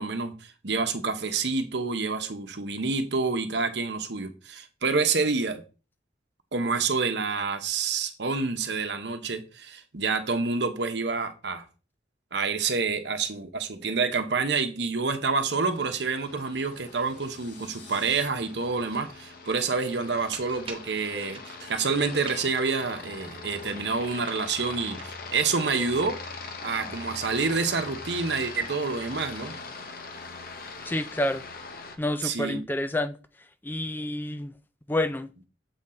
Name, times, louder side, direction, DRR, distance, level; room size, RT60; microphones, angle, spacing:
voice 1, 0.0-5.6 6.5-11.6 12.3-26.2 26.6-29.6 32.2-32.6, right 4 dB, 65° right, 0.9 m, -28 dB
Aircraft, 15.7-32.0, left 4 dB, 55° left, 0.9 m, -42 dB
sound 1, 16.4-18.3, left 3 dB, 80° left, 2.1 m, -51 dB
sound 2, 18.4-30.3, right 2 dB, 30° right, 1.2 m, -49 dB
voice 2, 30.8-31.4 32.0-33.2 33.6-34.5 34.9-35.3, left 1 dB, 10° left, 0.3 m, -28 dB
7.2 x 3.9 x 4.3 m
head